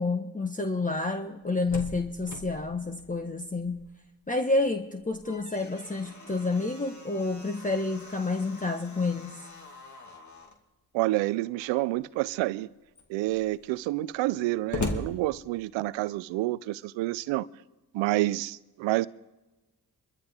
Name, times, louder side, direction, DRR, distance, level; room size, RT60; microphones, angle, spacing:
voice 1, 0.0-3.8 4.3-9.4, left 3 dB, 20° left, 1.3 m, -29 dB
Slam, 1.3-4.1 4.4-4.5 5.0-10.6 11.5-12.0 12.6-12.7 12.9-16.0, left 3 dB, 40° left, 2.4 m, -41 dB
voice 2, 10.9-12.7 13.1-17.5 17.9-19.1, right 18 dB, 90° right, 0.5 m, -28 dB
25.5 x 13.0 x 3.6 m
supercardioid pair, 40°, 44 cm